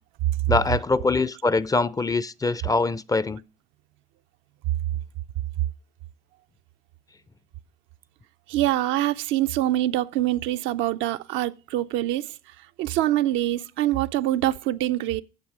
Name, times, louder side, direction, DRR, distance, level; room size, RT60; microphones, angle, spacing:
voice 1, 0.5-3.4, left 3 dB, 15° left, 0.5 m, -23 dB
voice 2, 8.5-12.4 12.8-15.2, right 14 dB, 70° right, 0.5 m, -24 dB
8.9 x 7.2 x 4.9 m
hypercardioid pair, 60°, 21 cm